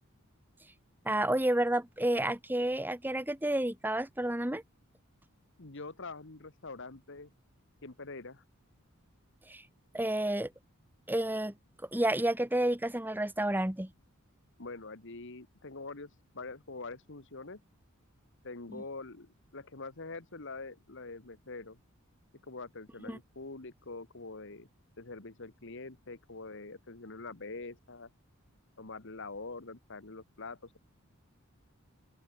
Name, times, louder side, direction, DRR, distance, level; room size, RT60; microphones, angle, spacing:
voice 1, 1.0-4.6 9.5-9.6 9.9-10.5 11.1-11.5 11.9-13.9 18.7-18.8 23.1-23.2, right 1 dB, 10° right, 1.5 m, -30 dB
voice 2, 5.6-7.3 7.8-8.4 14.6-17.6 18.4-21.8 22.5-24.7 25.0-28.1 28.8-30.8, left 3 dB, 60° left, 1.7 m, -44 dB
open air
head